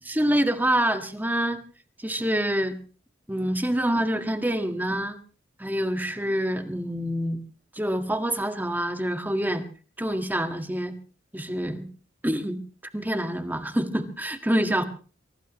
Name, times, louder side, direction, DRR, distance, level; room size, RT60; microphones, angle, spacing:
voice 1, 0.0-1.6 2.0-2.8 3.3-5.2 5.6-7.4 7.7-9.6 10.0-10.9 11.3-11.9 12.2-12.6 12.9-14.8, right 1 dB, 10° right, 7 dB, 1.7 m, -26 dB
24.5 x 18.5 x 3.1 m, 0.38 s
head